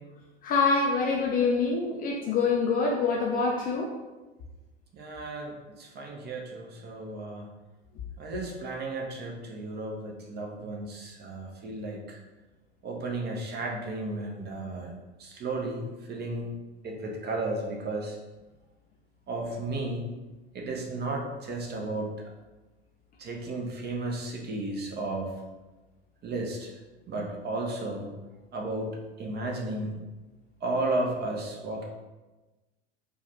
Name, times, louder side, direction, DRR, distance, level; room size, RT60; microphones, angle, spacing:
voice 1, 0.4-3.9, left 4 dB, 25° left, 0 dB, 0.4 m, -25 dB
voice 2, 4.9-7.5 8.2-12.2 12.8-14.9 15.2-16.5 16.8-18.2 19.3-20.1 20.5-22.1 23.2-25.3 26.2-26.7 27.1-28.1 28.5-28.9 29.2-29.9 30.6-31.8, right 2 dB, 30° right, 0 dB, 0.8 m, -33 dB
4.5 x 2.3 x 2.9 m, 1.1 s
figure-of-eight pair, 85°, 34 cm